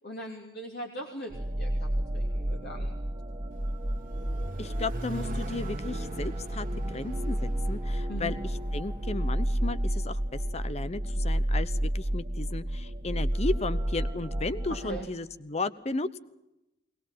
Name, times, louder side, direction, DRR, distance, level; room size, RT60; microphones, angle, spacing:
voice 1, 0.0-2.9 8.1-8.4 14.7-15.1, right 1 dB, 60° left, 1 dB, 3.1 m, -40 dB
sound 1, 1.3-15.1, right 1 dB, 25° right, 1.5 m, -31 dB
Accelerating revving vroom, 3.5-9.5, right 1 dB, 50° right, 1.6 m, -43 dB
voice 2, 4.6-8.4 8.7-16.2, left 3 dB, 35° left, 15 dB, 0.9 m, -34 dB
22.0 x 20.0 x 7.5 m, 0.91 s
head